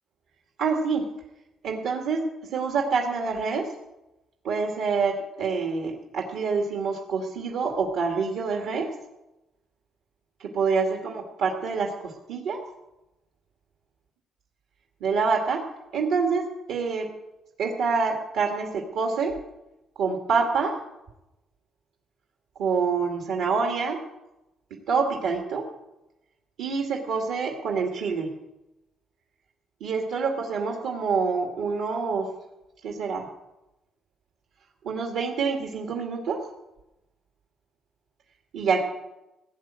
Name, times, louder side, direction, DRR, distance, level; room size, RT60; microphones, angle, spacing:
voice 1, 0.6-1.0 1.6-3.7 4.4-8.9 10.4-12.6 15.0-15.6 15.9-17.1 17.6-19.4 20.0-20.8 22.6-24.0 24.9-25.7 26.6-28.3 29.8-32.3 32.8-33.3 34.8-36.4 38.5-38.8, right 5 dB, 85° right, 1 dB, 2.1 m, -26 dB
16.5 x 9.1 x 7.6 m, 0.95 s
cardioid pair, 90°, 0 cm